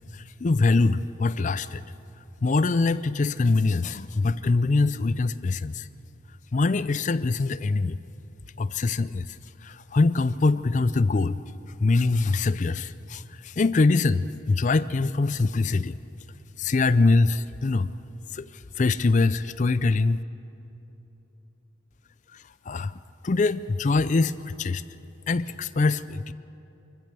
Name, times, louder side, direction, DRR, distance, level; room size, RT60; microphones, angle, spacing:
voice 1, 0.1-1.8 2.4-5.9 6.5-8.0 8.6-11.4 11.8-16.0 16.6-17.9 18.3-20.2 22.3-22.9 23.2-24.8 25.3-26.3, left 3 dB, 40° left, 15 dB, 0.4 m, -23 dB
25.0 x 15.0 x 6.8 m, 3.0 s
head